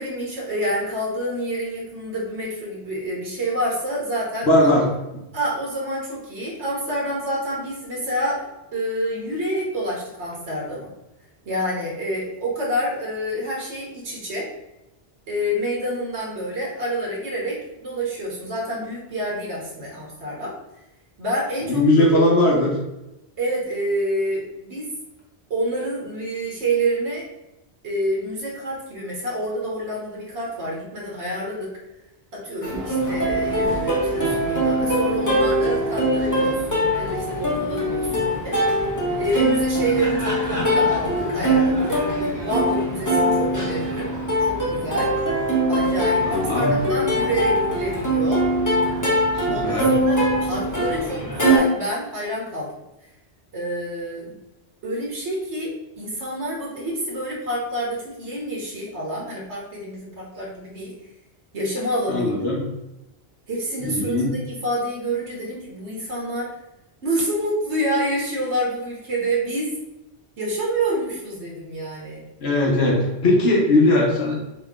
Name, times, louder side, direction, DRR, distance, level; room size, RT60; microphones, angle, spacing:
voice 1, 0.0-4.7 5.3-10.9 11.4-14.5 15.3-20.6 21.2-22.2 23.4-24.9 25.5-27.2 27.8-31.7 32.3-38.6 39.2-41.9 42.4-44.1 44.4-45.1 45.7-48.5 49.5-52.7 53.5-54.4 54.8-60.9 61.5-62.3 63.5-66.5 67.0-69.7 70.4-72.2, right 1 dB, 80° right, -4 dB, 1.4 m, -28 dB
voice 2, 4.4-5.2 21.6-22.7 38.0-38.2 46.2-46.7 49.3-49.9 62.1-62.7 63.8-64.3 72.4-74.3, left 1 dB, 65° left, -1 dB, 1.3 m, -19 dB
Plucked string instrument, 32.6-51.6, equal, 15° left, 1.0 m, -22 dB
4.5 x 3.0 x 3.6 m, 0.96 s
omnidirectional pair, 1.1 m